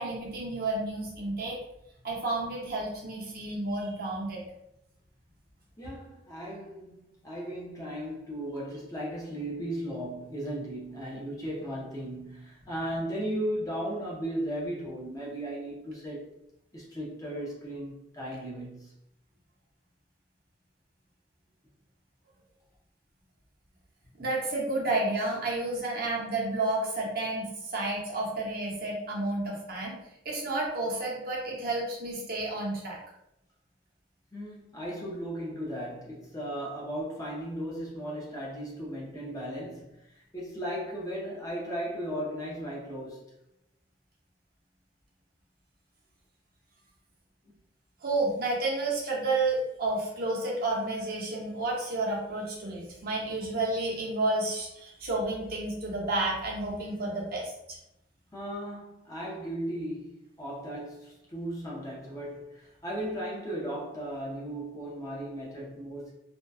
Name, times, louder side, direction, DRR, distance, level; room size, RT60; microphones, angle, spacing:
voice 1, 0.0-1.6 2.0-4.4 24.1-29.9 30.2-33.0 48.0-57.8, right 2 dB, 50° right, 0.7 m, -31 dB
voice 2, 5.8-16.3 16.7-18.9 34.3-43.2 47.4-47.5 58.3-66.1, right 1 dB, 20° left, 0.5 m, -36 dB
2.6 x 2.2 x 2.3 m
head